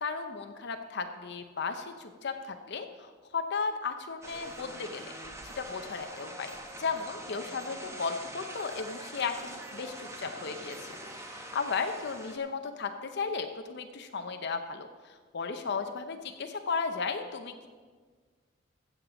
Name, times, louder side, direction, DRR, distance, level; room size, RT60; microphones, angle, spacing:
voice 1, 0.0-5.1 5.4-6.5 6.8-10.8 11.3-17.7, left 5 dB, 60° left, 6 dB, 0.7 m, -35 dB
sound 1, 4.2-12.4, right 1 dB, 15° right, 1.1 m, -44 dB
15.0 x 7.3 x 5.1 m, 1.5 s
head